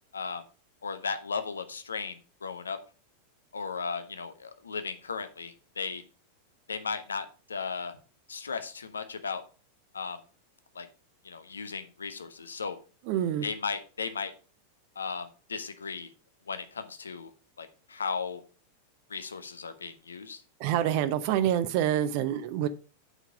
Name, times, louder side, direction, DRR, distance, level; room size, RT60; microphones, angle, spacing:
voice 1, 0.1-0.4 0.8-2.8 3.5-6.0 6.7-8.0 8.3-9.4 9.9-10.2 10.7-10.9 11.2-12.8 13.4-14.3 15.0-16.1 16.5-17.3 17.6-18.4 19.1-20.4, left 5 dB, 75° left, 10 dB, 1.0 m, -36 dB
voice 2, 13.1-13.4 20.6-22.7, right 11 dB, 45° right, 12 dB, 0.7 m, -27 dB
8.1 x 5.7 x 4.9 m, 0.36 s
figure-of-eight pair, 90°, 0 cm